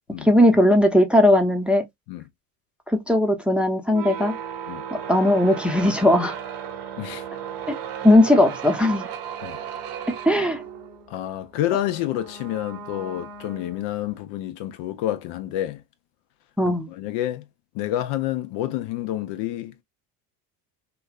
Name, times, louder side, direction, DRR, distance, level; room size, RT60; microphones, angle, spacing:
voice 1, 0.2-1.8 2.9-4.3 4.9-6.3 7.7-7.8 8.0-9.1 10.3-10.6 16.6-16.9, left 1 dB, ahead, 0.7 m, -18 dB
sound 1, 3.9-14.2, right 8 dB, 55° right, 1.0 m, -36 dB
voice 2, 11.1-15.8 16.6-17.4 17.7-19.8, left 13 dB, 60° left, 0.6 m, -29 dB
3.2 x 2.4 x 2.3 m
hypercardioid pair, 70°, 49 cm